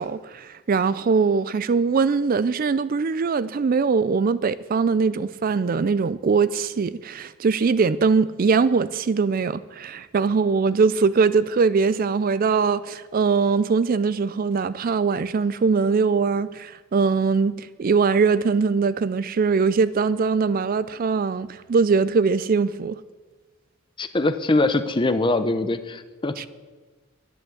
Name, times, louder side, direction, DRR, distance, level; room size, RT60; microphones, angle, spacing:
voice 1, 0.0-23.0 26.4-26.5, right 5 dB, 40° right, 0.4 m, -21 dB
voice 2, 24.0-26.5, left 2 dB, 20° left, 0.7 m, -23 dB
11.0 x 10.5 x 7.7 m
head